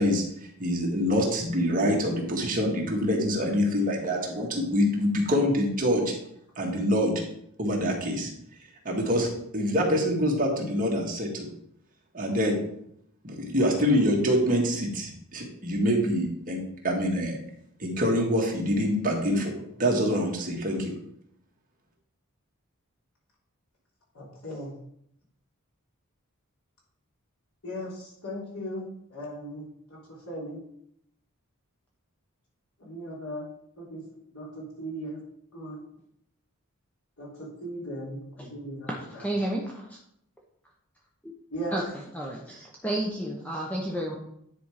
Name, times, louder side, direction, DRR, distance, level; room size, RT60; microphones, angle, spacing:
voice 1, 0.0-6.1 6.6-7.1 7.6-8.3 8.9-9.3 9.5-11.5 12.1-12.6 13.2-16.6 16.8-17.4 17.8-19.5 19.8-20.9, equal, 40° right, -1 dB, 1.9 m, -25 dB
voice 2, 24.1-24.7 27.6-30.6 32.8-33.5 33.8-34.0 34.3-35.2 35.5-35.8 37.2-39.3 41.5-41.8, equal, 85° left, -5 dB, 3.4 m, -38 dB
voice 3, 38.9-40.0 41.2-41.3 41.7-41.8 42.1-44.2, right 1 dB, 5° left, -2 dB, 0.9 m, -31 dB
9.9 x 4.4 x 4.9 m, 0.73 s
head